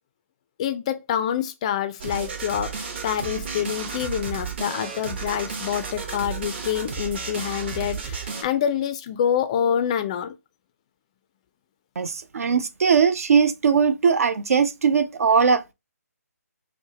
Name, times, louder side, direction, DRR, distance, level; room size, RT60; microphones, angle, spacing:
voice 1, 0.6-10.4, left 9 dB, 25° left, 0.3 m, -26 dB
sound 1, 2.0-8.4, right 5 dB, 40° right, 0.9 m, -32 dB
voice 2, 12.0-15.7, right 6 dB, 65° right, 0.5 m, -20 dB
4.5 x 2.1 x 2.8 m
hypercardioid pair, 155°, 9 cm